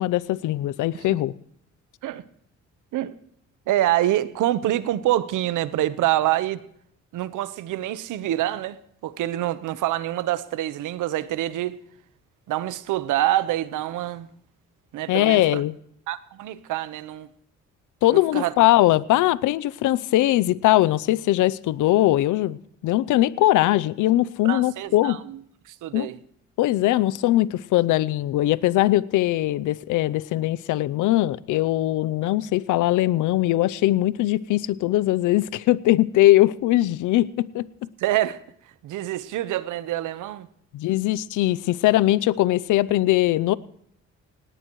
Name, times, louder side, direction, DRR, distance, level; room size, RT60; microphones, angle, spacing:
voice 1, 0.0-1.3 15.1-15.7 18.0-25.2 25.9-26.1 26.6-37.7 40.7-43.6, left 15 dB, 85° left, 0.6 m, -21 dB
voice 2, 3.7-6.6 7.1-11.8 12.5-14.3 14.9-15.6 16.1-17.3 18.1-18.5 24.4-25.4 25.6-26.2 38.0-38.4 38.8-40.5, right 14 dB, 85° right, 1.1 m, -26 dB
19.0 x 17.5 x 3.1 m
cardioid pair, 90°, 30 cm